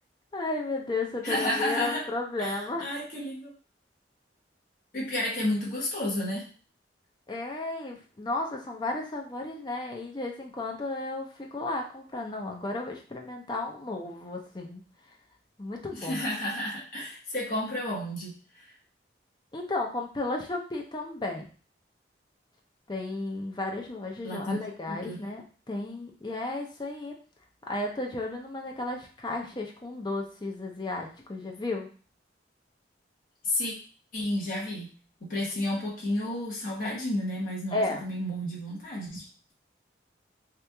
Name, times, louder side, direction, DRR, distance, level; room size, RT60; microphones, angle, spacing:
voice 1, 0.3-2.9 7.3-14.8 15.6-16.2 19.5-21.5 22.9-27.1 27.7-31.9 37.7-38.0, left 2 dB, 25° left, 1 dB, 0.5 m, -33 dB
voice 2, 1.2-2.0 2.4-3.5 4.9-6.5 15.9-18.7 24.2-24.6 24.9-25.2 33.4-33.7 34.1-34.9 35.2-39.3, left 1 dB, 50° left, -4 dB, 0.9 m, -31 dB
2.9 x 2.4 x 3.3 m, 0.39 s
head